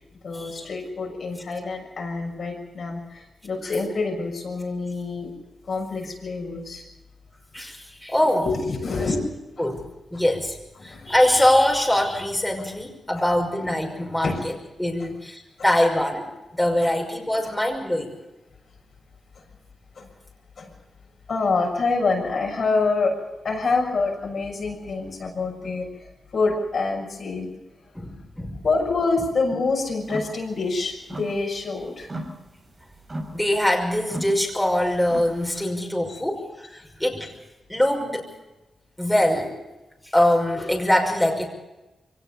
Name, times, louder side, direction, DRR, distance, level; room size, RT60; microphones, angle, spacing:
voice 1, 0.2-5.3 5.6-6.8 8.2-9.2 9.6-9.7 10.8-11.1 14.2-14.4 15.0-15.1 15.6-15.7 16.8-16.9 17.4-17.5 19.3-19.4 19.9-20.1 20.6-20.7 21.3-27.5 28.6-32.1 36.1-36.2, left 3 dB, 65° left, 0 dB, 6.6 m, -26 dB
voice 2, 7.5-8.5 9.0-9.1 9.6-9.8 10.1-14.3 14.8-16.2 16.5-18.2 27.9-28.6 33.3-37.3 37.7-38.2 39.0-39.6 40.1-41.5, left 1 dB, 5° left, 1 dB, 5.7 m, -23 dB
sound 1, 30.0-30.4 30.7-31.7 32.0-35.5, right 1 dB, 35° right, 6.6 m, -37 dB
23.0 x 18.0 x 6.9 m, 1.0 s
cardioid pair, 60°, 0 cm